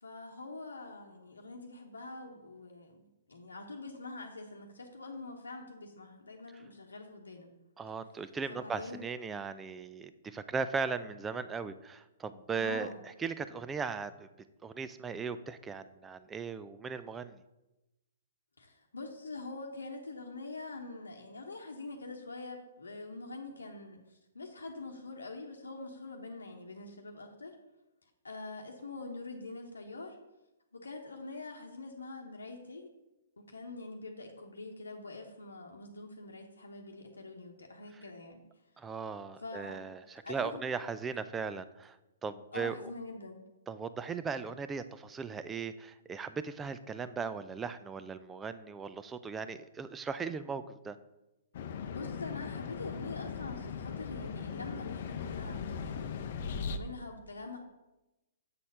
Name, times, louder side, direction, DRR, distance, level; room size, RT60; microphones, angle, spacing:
voice 1, 0.0-7.5 8.5-9.1 12.5-13.0 18.6-27.6 28.0-30.2 30.7-32.9 33.4-38.4 39.4-39.9 40.2-40.6 42.5-43.4 51.9-57.6, left 3 dB, 80° left, 1 dB, 1.0 m, -45 dB
voice 2, 7.8-14.3 14.6-17.4 38.8-42.0 42.2-42.8 43.7-51.0, right 5 dB, 15° right, 12 dB, 0.4 m, -38 dB
sound 1, 51.5-56.8, left 6 dB, 55° left, 0.6 m, -39 dB
7.3 x 4.2 x 6.7 m, 0.99 s
figure-of-eight pair, 120°, 0 cm